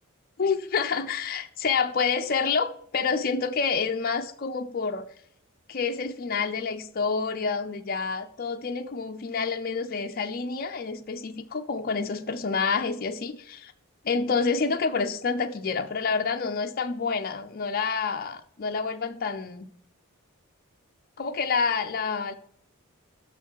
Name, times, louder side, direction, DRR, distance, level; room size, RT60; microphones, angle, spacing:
voice 1, 0.4-5.1 5.7-13.7 14.0-19.7 21.2-22.3, left 5 dB, 45° left, 5 dB, 0.5 m, -28 dB
6.8 x 6.4 x 6.3 m, 0.66 s
head